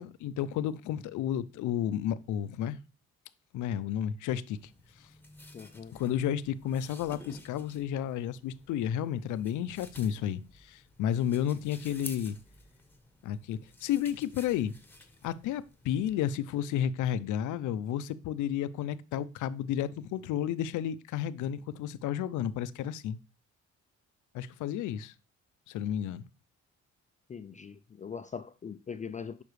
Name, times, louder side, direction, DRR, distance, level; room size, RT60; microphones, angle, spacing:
voice 1, 0.0-2.8 3.5-4.6 5.9-12.4 13.2-14.7 15.2-23.2 24.3-25.1 25.7-26.2, left 10 dB, 80° left, 0.5 m, -32 dB
sound 1, 4.5-16.3, left 1 dB, 5° left, 1.2 m, -52 dB
voice 2, 5.5-5.9 27.3-29.4, left 6 dB, 25° left, 0.3 m, -41 dB
6.7 x 5.2 x 3.2 m
cardioid pair, 90°, 30 cm